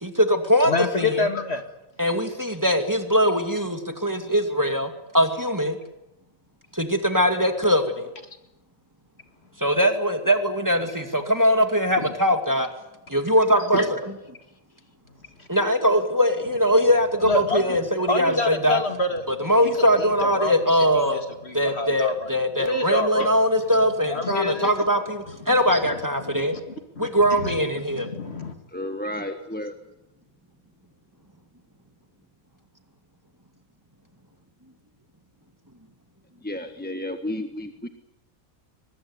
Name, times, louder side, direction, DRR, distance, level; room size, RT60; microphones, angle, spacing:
voice 1, 0.0-1.3 2.0-5.8 6.7-8.1 9.6-12.7 13.1-14.0 15.5-18.8 19.4-21.2 21.5-26.6 27.0-28.1, equal, 15° right, 5 dB, 2.3 m, -21 dB
voice 2, 0.6-1.6 12.0-12.1 13.7-13.9 15.4-15.5 17.2-17.8 18.1-19.3 19.6-20.6 21.1-22.3 22.6-23.3 24.1-24.9 26.2-26.6 27.0-27.1 27.4-27.5 27.9-28.5, left 3 dB, 50° left, 7 dB, 2.2 m, -27 dB
voice 3, 28.7-29.7 36.4-37.9, left 1 dB, 5° left, 6 dB, 1.3 m, -32 dB
23.0 x 20.5 x 9.7 m, 0.91 s
omnidirectional pair, 1.5 m